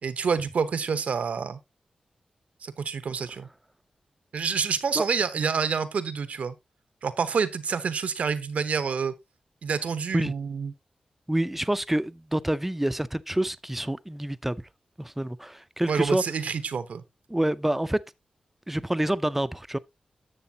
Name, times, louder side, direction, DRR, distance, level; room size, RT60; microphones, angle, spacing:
voice 1, 0.0-1.6 2.6-3.5 4.3-6.5 7.0-9.1 9.6-10.7 15.9-17.0, right 6 dB, 80° right, 1.0 m, -28 dB
voice 2, 11.3-14.6 15.0-16.2 17.3-18.0 18.7-19.8, right 1 dB, 10° right, 0.5 m, -27 dB
11.0 x 7.0 x 2.8 m
wide cardioid pair, 80°, 2 cm